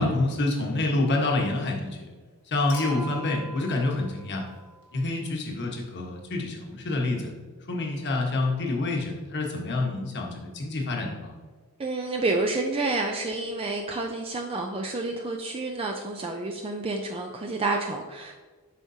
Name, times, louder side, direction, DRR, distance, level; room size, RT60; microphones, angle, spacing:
voice 1, 0.0-2.1 2.5-4.4 4.9-7.3 7.7-11.3, left 2 dB, 50° left, 0 dB, 1.3 m, -27 dB
Human group actions / Chink clink / Liquid, 2.7-5.1 6.6-6.7, right 1 dB, 90° left, 2.1 m, -41 dB
voice 2, 11.8-18.4, right 2 dB, 25° right, 3 dB, 0.4 m, -29 dB
8.2 x 5.8 x 2.8 m, 1.4 s
head